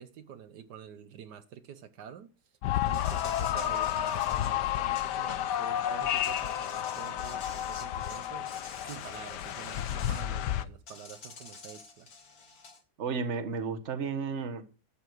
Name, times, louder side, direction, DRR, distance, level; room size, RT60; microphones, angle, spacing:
voice 1, 0.0-2.3 2.8-8.5 8.8-12.1, right 8 dB, 75° right, 1.5 m, -47 dB
sound 1, 2.6-10.7, left 11 dB, 80° left, 1.4 m, -31 dB
Insect, 2.9-5.6 6.0-10.3 10.9-12.8, left 4 dB, 60° left, 2.4 m, -48 dB
voice 2, 13.0-14.6, right 5 dB, 45° right, 1.5 m, -33 dB
12.5 x 9.0 x 4.6 m
omnidirectional pair, 1.8 m